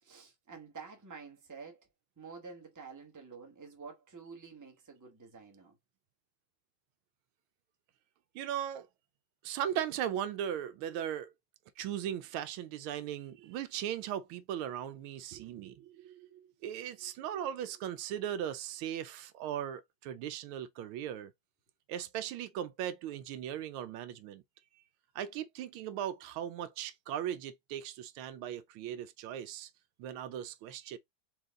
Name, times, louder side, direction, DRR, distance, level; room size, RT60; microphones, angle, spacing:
voice 1, 0.0-1.9 2.2-5.8, right 5 dB, 15° right, 0.8 m, -49 dB
voice 2, 8.3-8.9 9.4-11.3 11.8-21.3 21.9-24.4 25.1-29.7 30.0-31.0, right 10 dB, 80° right, 1.4 m, -38 dB
4.5 x 3.1 x 3.6 m
omnidirectional pair, 2.3 m